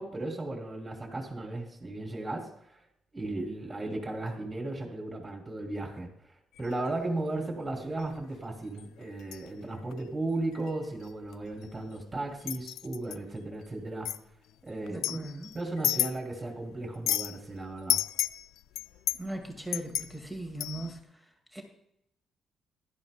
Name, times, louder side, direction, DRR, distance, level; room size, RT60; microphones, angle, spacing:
voice 1, 0.0-2.8 3.1-6.1 6.6-14.1 14.6-15.2 15.5-18.0, right 2 dB, 20° right, 2 dB, 2.9 m, -35 dB
sound 1, 6.6-6.9 8.0-8.2 8.8-9.5 9.8-10.0 10.5-10.8 11.0-12.0 12.4-13.2 14.1-14.2 14.9-16.5 16.8-17.4 17.9-21.0, left 12 dB, 85° left, 0.3 m, -32 dB
voice 2, 14.9-15.5 19.2-21.1 21.5-21.6, right 1 dB, 5° left, 3 dB, 1.9 m, -38 dB
15.5 x 11.5 x 2.2 m, 0.76 s
cardioid pair, 90°, 0 cm